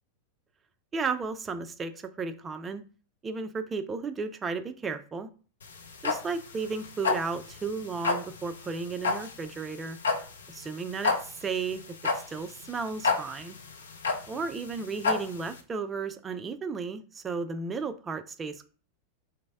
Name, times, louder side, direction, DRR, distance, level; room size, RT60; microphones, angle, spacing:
voice 1, 0.9-2.8 3.2-5.3 6.0-10.0 10.5-11.8 12.3-13.6 14.3-18.6, right 4 dB, 20° right, 10 dB, 0.3 m, -34 dB
sound 1, 5.6-15.6, left 4 dB, 70° left, 0.4 m, -30 dB
3.2 x 2.0 x 3.4 m, 0.38 s
figure-of-eight pair, 90°, 0 cm